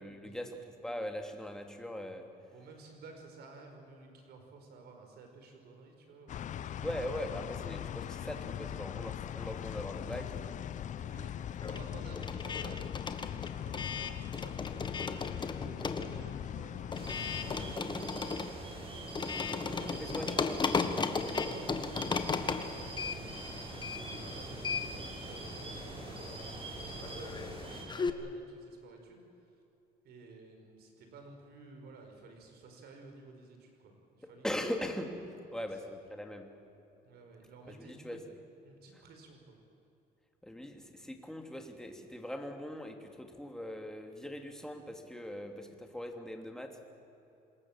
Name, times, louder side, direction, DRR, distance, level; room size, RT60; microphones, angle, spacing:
voice 1, 0.0-2.3 6.8-10.6 19.8-20.6 34.4-35.2 35.5-36.5 37.7-38.2 38.9-39.0 40.4-46.8, left 1 dB, 5° left, 3 dB, 2.9 m, -41 dB
voice 2, 2.5-7.3 11.0-12.8 13.6-20.1 21.2-26.6 26.9-29.2 30.0-34.4 35.5-35.7 37.0-38.2 38.6-39.6, right 3 dB, 70° right, 4 dB, 5.1 m, -54 dB
sound 1, 6.3-17.8, left 10 dB, 50° left, 0.6 m, -40 dB
sound 2, 9.3-10.5 10.8-28.1, left 5 dB, 25° left, 1.5 m, -37 dB
sound 3, 16.9-27.8, right 2 dB, 30° right, 6.6 m, -43 dB
26.5 x 21.0 x 7.4 m, 2.9 s
cardioid pair, 110°, 17 cm